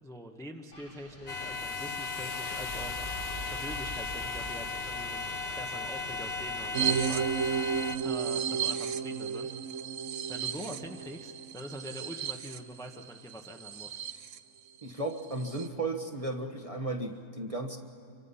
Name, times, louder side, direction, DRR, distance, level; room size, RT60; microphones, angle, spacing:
voice 1, 0.0-3.1 3.5-5.2 5.6-7.7 8.0-9.5 10.3-14.0, equal, 5° left, 3 dB, 1.0 m, -44 dB
Wind, 0.7-7.3, equal, 90° left, 4.6 m, -47 dB
sound 1, 1.3-8.0, left 4 dB, 45° left, 1.0 m, -36 dB
sound 2, 6.7-14.4 14.8-14.9 15.2-15.7, right 7 dB, 60° right, 1.1 m, -33 dB
voice 2, 14.8-17.8, right 2 dB, 25° right, 4 dB, 1.3 m, -34 dB
27.5 x 24.5 x 5.6 m, 2.7 s
omnidirectional pair, 1.6 m